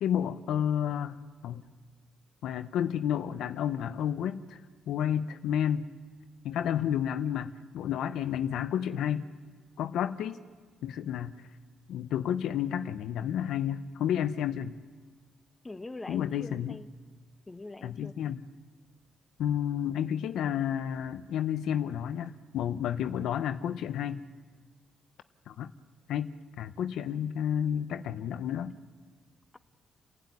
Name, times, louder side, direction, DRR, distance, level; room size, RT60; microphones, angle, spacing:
voice 1, 0.0-1.6 2.4-4.6 4.9-5.9 6.4-9.3 9.8-10.4 10.8-11.3 11.9-14.7 16.1-16.8 17.8-18.4 19.4-24.2 25.5-25.7 26.1-26.3 26.6-28.7, left 9 dB, 80° left, 11 dB, 0.8 m, -31 dB
voice 2, 15.6-16.9 17.5-18.3, left 2 dB, 20° left, 9 dB, 1.1 m, -43 dB
29.5 x 12.0 x 9.6 m, 1.5 s
cardioid pair, 90°, 0 cm